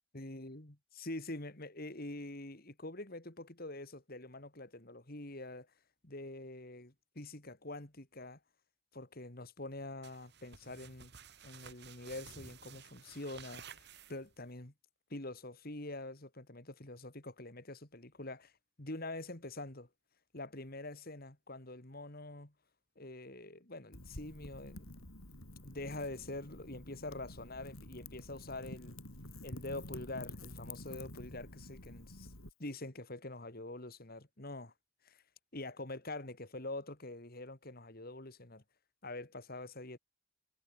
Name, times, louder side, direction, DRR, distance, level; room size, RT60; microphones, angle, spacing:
voice 1, 0.1-5.7 6.0-8.4 8.9-11.1 11.4-14.7 15.1-18.5 18.8-19.9 20.3-22.5 23.0-25.0 25.6-29.0 29.4-32.3 32.6-34.7 35.0-35.2 35.5-38.6 39.0-40.0, left 2 dB, 45° left, 2.3 m, -45 dB
sound 1, 10.0-14.5, right 7 dB, 50° right, 2.9 m, -54 dB
Wind / Fire, 23.9-32.5, left 1 dB, 70° left, 5.9 m, -49 dB
head